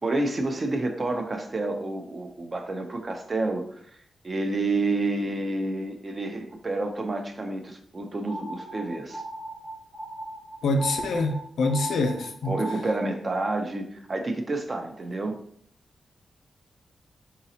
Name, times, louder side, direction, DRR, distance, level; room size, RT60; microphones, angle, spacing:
voice 1, 0.0-3.7 4.2-9.2 12.4-15.4, right 2 dB, 35° right, 4 dB, 0.7 m, -29 dB
sound 1, 8.2-13.1, right 1 dB, 90° right, 1.1 m, -38 dB
voice 2, 10.6-12.6, left 2 dB, 90° left, 4 dB, 0.6 m, -25 dB
4.0 x 3.9 x 2.8 m, 0.64 s
wide cardioid pair, 100°, 0 cm